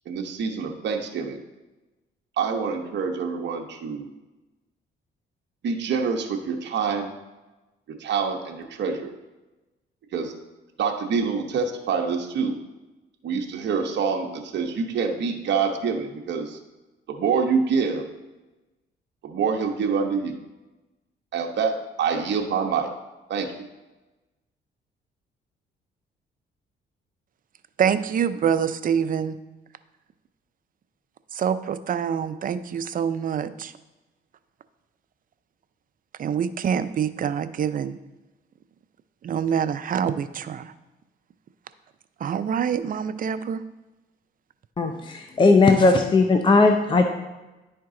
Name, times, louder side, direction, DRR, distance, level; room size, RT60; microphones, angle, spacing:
voice 1, 0.1-1.4 2.4-4.1 5.6-7.1 8.0-9.1 10.1-10.3 10.8-12.6 13.2-16.6 17.1-18.0 19.2-20.4 21.3-22.9 23.3-23.5, right 5 dB, 60° right, 2 dB, 0.9 m, -26 dB
voice 2, 27.8-29.4 31.3-33.7 36.2-38.0 39.2-40.7 42.2-43.6, right 8 dB, 45° right, 12 dB, 0.5 m, -25 dB
voice 3, 44.8-47.0, left 3 dB, 25° left, 5 dB, 0.6 m, -18 dB
10.5 x 4.6 x 3.7 m, 1.1 s
cardioid pair, 90°, 20 cm